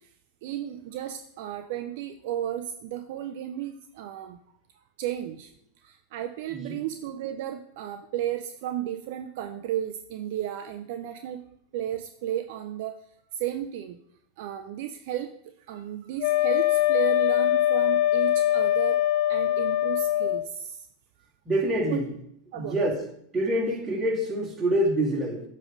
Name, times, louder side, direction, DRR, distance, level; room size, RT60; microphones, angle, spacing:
voice 1, 0.4-4.4 5.0-5.5 5.8-11.4 11.7-13.0 13.3-14.0 14.4-19.0 19.3-20.9 21.9-22.0 22.5-22.8, right 11 dB, 65° right, 7 dB, 0.5 m, -34 dB
Wind instrument woodwind instrument, 16.2-20.5, left 13 dB, 60° left, 0.3 m, -23 dB
voice 2, 21.5-22.1 22.5-23.0 23.3-25.4, right 1 dB, 20° right, -4 dB, 2.6 m, -26 dB
8.4 x 3.3 x 5.3 m, 0.72 s
hypercardioid pair, 100°, 0 cm